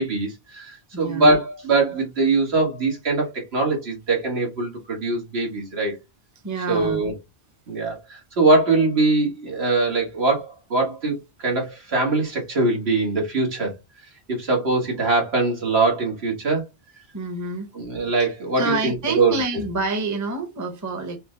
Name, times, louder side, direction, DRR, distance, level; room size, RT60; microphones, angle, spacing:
voice 1, 0.0-6.0 6.7-7.1 7.7-13.7 14.3-16.6 17.7-19.4, right 3 dB, 75° right, 1.8 m, -22 dB
voice 2, 0.9-1.3 6.4-7.0 17.1-17.7 18.6-21.2, right 3 dB, 20° right, 0.7 m, -27 dB
5.5 x 2.1 x 3.8 m
omnidirectional pair, 1.1 m